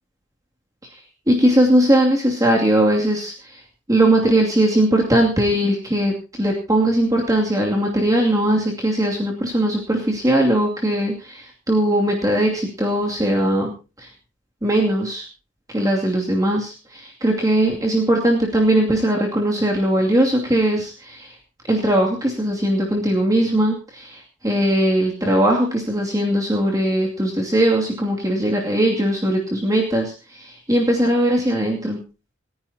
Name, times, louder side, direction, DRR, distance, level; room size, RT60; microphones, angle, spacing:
voice 1, 1.3-3.6 3.9-13.7 14.0-14.1 14.6-15.3 15.7-21.3 21.7-32.0, right 1 dB, 20° right, -1 dB, 2.5 m, -19 dB
28.5 x 10.5 x 2.9 m, 0.33 s
head